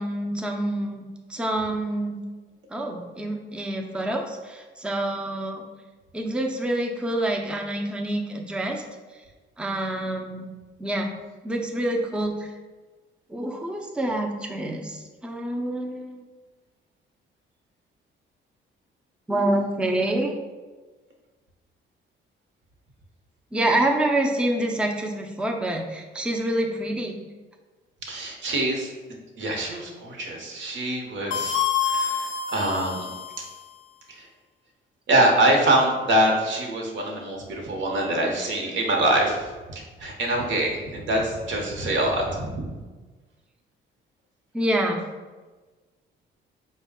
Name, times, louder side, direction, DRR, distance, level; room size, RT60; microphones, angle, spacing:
voice 1, 0.0-2.2 2.7-5.6 6.1-8.8 9.6-10.5 10.8-11.1 11.4-12.5 13.3-16.2 19.3-20.4 23.5-27.2 44.5-45.0, right 1 dB, 5° right, 2 dB, 0.4 m, -27 dB
voice 2, 28.0-28.9 29.4-33.1 34.1-34.3 35.1-42.7, right 1 dB, 70° right, 0 dB, 0.9 m, -24 dB
sound 1, 31.3-33.7, left 7 dB, 70° left, 0.4 m, -27 dB
4.5 x 2.2 x 3.5 m, 1.3 s
cardioid pair, 90°, 20 cm